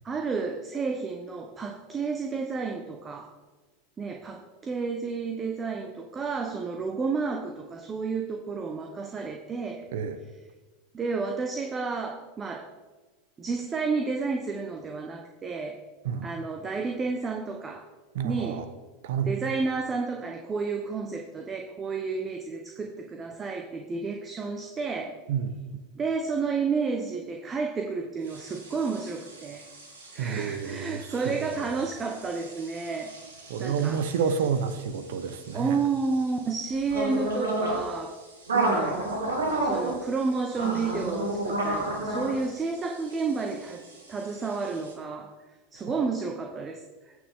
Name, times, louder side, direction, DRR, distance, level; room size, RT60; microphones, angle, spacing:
voice 1, 0.0-3.3 4.0-9.8 10.9-12.7 13.4-15.8 16.2-17.8 18.2-18.6 19.2-25.1 26.0-29.6 30.1-33.1 33.6-34.0 35.5-38.2 38.5-39.1 39.6-43.8 44.1-45.3 45.7-47.1, right 4 dB, 25° right, 3 dB, 1.1 m, -31 dB
voice 2, 18.1-18.6 19.0-19.3 25.3-25.6 30.2-31.5 33.5-35.8, right 6 dB, 70° right, 11 dB, 0.9 m, -29 dB
sound 1, 28.3-44.9, right 2 dB, 85° right, 2.3 m, -33 dB
16.5 x 6.3 x 3.7 m, 1.2 s
hypercardioid pair, 95°, 0 cm